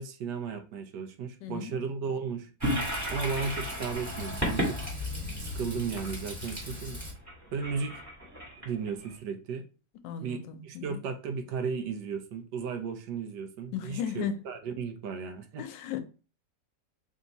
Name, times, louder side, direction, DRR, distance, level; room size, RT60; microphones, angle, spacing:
voice 1, 0.0-2.5 3.1-4.8 5.4-7.0 7.5-7.9 8.6-9.6 10.2-15.6, right 5 dB, 75° right, 1.2 m, -35 dB
voice 2, 1.4-1.9 10.0-11.0 13.7-14.3 15.6-16.0, left 8 dB, 90° left, 1.3 m, -35 dB
Toilet flush, 2.6-9.1, equal, 10° right, 1.3 m, -34 dB
3.5 x 2.7 x 3.9 m
omnidirectional pair, 1.9 m